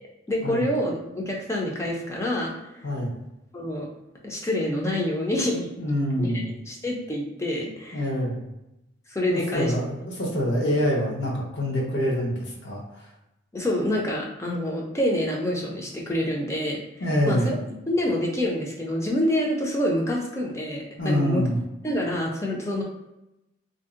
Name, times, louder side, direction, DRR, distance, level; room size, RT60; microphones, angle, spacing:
voice 1, 0.3-2.5 3.5-3.9 4.2-5.7 6.2-6.4 6.7-8.0 9.1-9.7 13.5-16.8 17.3-17.4 17.9-21.4 21.8-22.8, left 1 dB, 15° left, -2 dB, 0.5 m, -26 dB
voice 2, 5.8-6.5 7.9-8.4 9.3-12.8 17.0-17.5 21.0-21.6, equal, 60° left, -3 dB, 0.8 m, -25 dB
2.6 x 2.0 x 3.6 m, 0.90 s
head